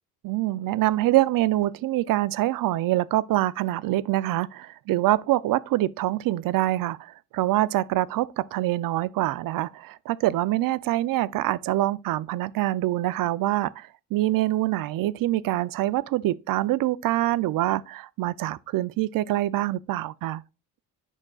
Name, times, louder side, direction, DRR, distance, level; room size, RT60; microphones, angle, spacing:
voice 1, 0.2-20.4, right 15 dB, 65° right, 0.5 m, -25 dB
9.0 x 5.8 x 2.3 m
cardioid pair, 95°, 37 cm